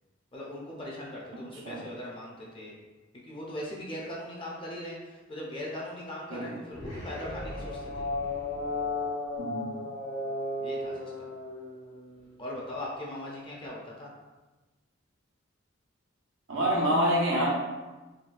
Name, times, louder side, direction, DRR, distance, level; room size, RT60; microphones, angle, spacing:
voice 1, 0.3-2.8 3.1-8.0 10.6-11.3 12.4-14.1, left 1 dB, 25° left, -4 dB, 0.6 m, -40 dB
sound 1, 6.7-12.3, left 2 dB, 75° left, 1.4 m, -35 dB
voice 2, 9.4-9.7 16.5-17.5, equal, 85° right, -3 dB, 0.8 m, -26 dB
3.9 x 2.2 x 2.5 m, 1.2 s
head